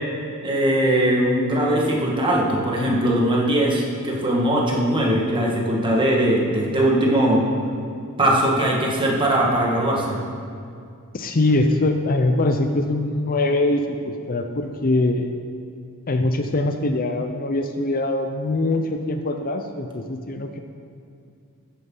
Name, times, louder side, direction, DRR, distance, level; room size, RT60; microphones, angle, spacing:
voice 1, 0.4-7.4 8.2-10.2, right 1 dB, 20° right, -3 dB, 1.7 m, -20 dB
voice 2, 11.1-15.3 16.1-20.6, left 2 dB, 40° left, 6 dB, 0.6 m, -22 dB
13.5 x 9.9 x 3.8 m, 2.4 s
head